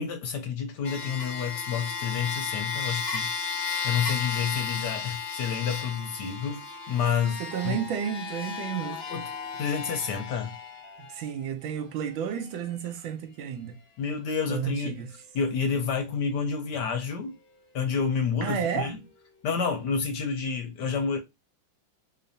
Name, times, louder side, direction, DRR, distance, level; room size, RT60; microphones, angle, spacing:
voice 1, 0.0-7.8 9.1-9.3 9.6-10.5 14.0-15.0 15.3-17.4 17.7-19.0 19.4-21.2, left 6 dB, 65° left, 1.2 m, -29 dB
sound 1, 0.8-11.3 12.1-12.2, left 6 dB, 50° left, 0.8 m, -34 dB
voice 2, 7.4-9.0 11.1-13.8 14.5-15.1 18.4-18.9, right 8 dB, 75° right, 1.4 m, -32 dB
3.9 x 3.4 x 2.6 m
omnidirectional pair, 2.2 m